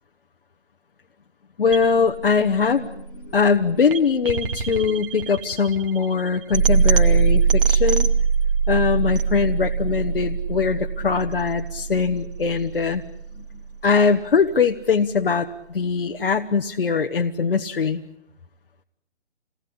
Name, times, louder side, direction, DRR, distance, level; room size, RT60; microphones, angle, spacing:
voice 1, 1.6-8.1 8.7-13.0 13.8-18.0, left 5 dB, 55° left, 3 dB, 1.4 m, -21 dB
sound 1, 1.7-13.7, right 6 dB, 50° right, 2.4 m, -23 dB
29.0 x 19.5 x 8.6 m, 0.84 s
figure-of-eight pair, 160°, 34 cm